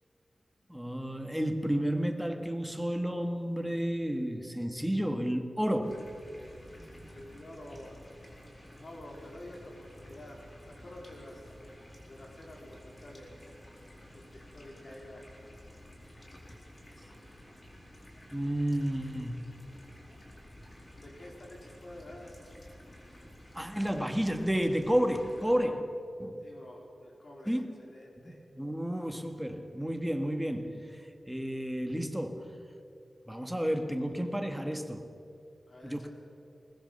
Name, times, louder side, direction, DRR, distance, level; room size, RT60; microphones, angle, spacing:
voice 1, 0.7-6.1 18.3-19.4 23.5-26.4 27.5-27.7 28.2-31.0 31.3-32.6 33.3-35.1 35.8-36.1, equal, 5° right, 6 dB, 1.8 m, -31 dB
sound 1, 5.8-25.5, equal, 30° left, 4.4 m, -52 dB
voice 2, 7.1-7.9 8.7-10.4 10.7-11.5 12.0-13.5 14.1-15.3 20.9-22.5 26.4-28.4 35.7-36.1, left 1 dB, 50° left, -1 dB, 4.6 m, -49 dB
21.0 x 20.0 x 6.9 m, 2.5 s
wide cardioid pair, 85°, 0 cm